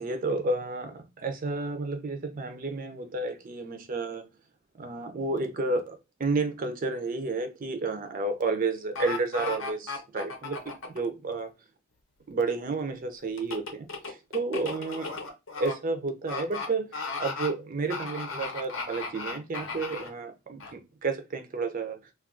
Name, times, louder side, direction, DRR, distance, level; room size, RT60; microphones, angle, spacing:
voice 1, 0.0-4.2 4.8-10.6 10.8-11.5 12.3-15.2 15.6-16.9 17.2-22.0, right 3 dB, 40° right, 0.4 m, -31 dB
sound 1, 9.0-11.0 13.4-15.7 16.3-16.7 16.9-17.5 17.9-20.1 20.6-20.7, left 4 dB, 65° left, 0.7 m, -35 dB
2.3 x 2.3 x 3.6 m
head